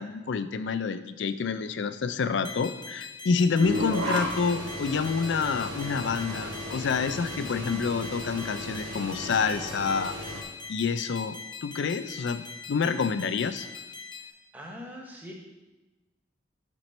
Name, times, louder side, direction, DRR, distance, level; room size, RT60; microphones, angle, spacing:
voice 1, 0.0-10.1 10.7-13.7, left 5 dB, 70° left, 12 dB, 0.4 m, -28 dB
sound 1, 2.4-14.3, left 5 dB, 25° left, 0.7 m, -42 dB
sound 2, 3.6-10.4, equal, 75° right, 1.1 m, -35 dB
voice 2, 14.5-15.3, equal, 10° right, 0 dB, 0.9 m, -42 dB
6.1 x 5.9 x 4.3 m, 1.1 s
head